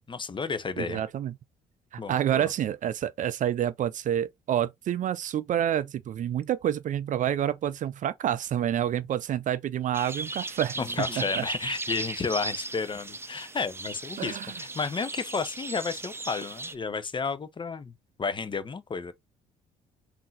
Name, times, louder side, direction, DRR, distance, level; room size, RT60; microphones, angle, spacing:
voice 1, 0.0-1.0 2.0-2.5 10.8-17.9 18.2-19.1, left 5 dB, 30° left, 0.7 m, -32 dB
voice 2, 0.8-1.3 1.9-11.5 14.2-14.5, right 10 dB, 50° right, 0.5 m, -28 dB
sound 1, 9.9-16.7, right 3 dB, 15° right, 0.7 m, -37 dB
3.8 x 2.7 x 3.9 m
hypercardioid pair, 60°, 16 cm